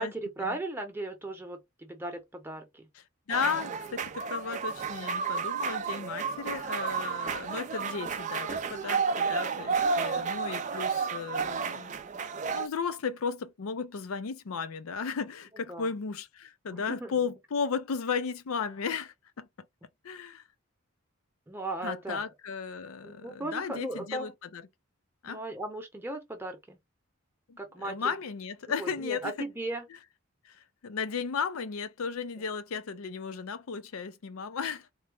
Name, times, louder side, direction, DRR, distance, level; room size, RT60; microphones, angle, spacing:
voice 1, 0.0-2.9 10.1-10.3 15.7-15.9 16.7-17.1 21.5-22.2 23.0-24.3 25.2-26.8 27.6-28.0 28.8-29.9, right 2 dB, 10° right, 0.8 m, -37 dB
voice 2, 3.3-11.9 12.5-19.5 20.0-20.4 21.8-24.6 25.2-25.4 27.5-29.5 30.4-30.6 30.8-34.9, left 6 dB, 80° left, 0.5 m, -35 dB
sound 1, 3.3-12.7, right 5 dB, 35° right, 0.3 m, -32 dB
3.8 x 2.1 x 3.4 m
head